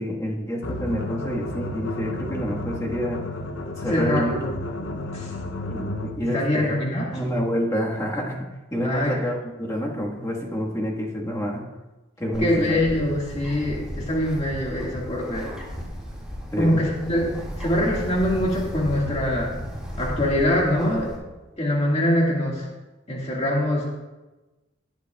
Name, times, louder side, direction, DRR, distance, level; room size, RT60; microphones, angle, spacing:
voice 1, 0.0-3.2 3.8-4.5 4.9-5.1 5.7-6.7 7.1-11.6 12.2-12.8 16.5-16.8, equal, 15° left, -2 dB, 1.5 m, -28 dB
sound 1, 0.6-6.3, left 1 dB, 65° left, 0.7 m, -32 dB
voice 2, 3.9-4.3 5.1-5.3 6.2-7.2 8.8-9.1 12.4-15.5 16.6-19.5 20.0-21.1 21.6-22.7 23.1-23.9, left 1 dB, 35° left, -3 dB, 1.9 m, -23 dB
Bird, 12.3-21.2, equal, 5° right, 2.0 m, -35 dB
18.0 x 8.1 x 2.3 m, 1.1 s
head